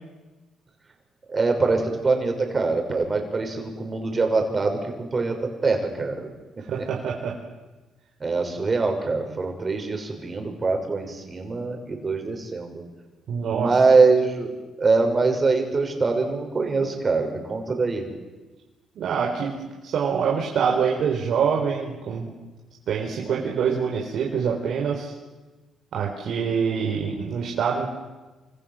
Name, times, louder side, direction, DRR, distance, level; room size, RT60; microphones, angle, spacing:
voice 1, 1.3-5.4 5.6-6.3 8.2-12.8 13.4-14.5 14.8-18.1, right 3 dB, 30° right, 4 dB, 6.6 m, -23 dB
voice 2, 6.7-7.4 13.3-13.7 19.0-22.3 22.9-25.1 25.9-27.9, right 6 dB, 70° right, -1 dB, 4.5 m, -25 dB
28.5 x 27.0 x 7.8 m, 1.2 s
cardioid pair, 90°, 0 cm